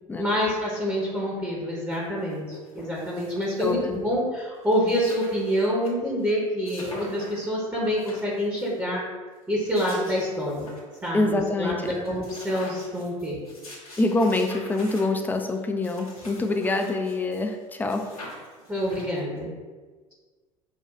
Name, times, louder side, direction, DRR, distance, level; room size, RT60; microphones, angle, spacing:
voice 1, 0.2-9.0 9.5-10.7 11.0-13.4 18.7-19.5, equal, 10° right, -5 dB, 0.8 m, -27 dB
sound 1, 1.9-2.0 2.3-3.9 4.4-4.5 4.6-5.9 6.2-6.3 6.6-7.4 7.8-8.7 9.4-11.1 11.4-11.5 11.8-17.6 17.9-19.4, left 1 dB, 90° left, 0.9 m, -45 dB
voice 2, 3.6-4.0 11.1-11.9 14.0-18.0, left 2 dB, 10° left, 5 dB, 0.4 m, -25 dB
5.4 x 2.3 x 2.4 m, 1.4 s
figure-of-eight pair, 70°, 18 cm